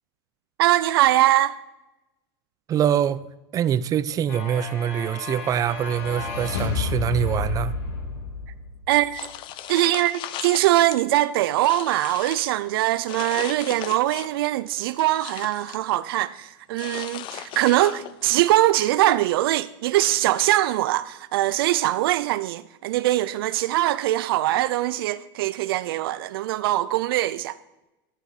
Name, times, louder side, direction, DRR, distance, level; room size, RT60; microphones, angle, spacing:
voice 1, 0.6-1.6 8.9-9.2 9.7-27.6, right 15 dB, 75° right, 0.4 m, -22 dB
voice 2, 2.7-3.3 3.5-7.7, right 9 dB, 30° right, 0.6 m, -24 dB
sound 1, 4.3-9.0, left 4 dB, 90° left, 3.1 m, -30 dB
sound 2, 9.1-11.0 11.4-12.5 13.1-14.4 14.8-15.8 16.8-18.3, left 12 dB, 40° left, 0.7 m, -37 dB
11.5 x 10.5 x 4.8 m
supercardioid pair, 125°, 12 cm